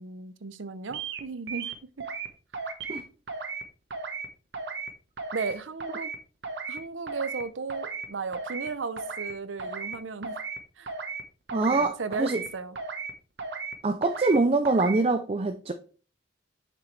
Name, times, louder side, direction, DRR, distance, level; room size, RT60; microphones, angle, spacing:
voice 1, 0.0-2.1 5.3-6.1 6.7-10.4 10.8-10.9 11.7-12.8, right 4 dB, 85° right, 0.7 m, -35 dB
sound 1, 0.9-1.2 1.5-2.3 2.5-3.0 3.3-3.6 3.9-4.3 4.5-4.9 5.2-5.5 5.8-6.2 6.4-6.8 7.1-7.4 7.7-8.1 8.3-8.7 9.0-9.3 9.6-10.0 10.2-10.6 10.9-11.2 11.5-11.8 12.1-12.5 12.8-13.1 13.4-13.7 14.0-14.4 14.7-15.0, right 4 dB, 60° right, 1.1 m, -35 dB
voice 2, 11.5-12.4 13.8-15.7, right 3 dB, 30° right, 0.4 m, -24 dB
7.6 x 6.1 x 3.2 m
head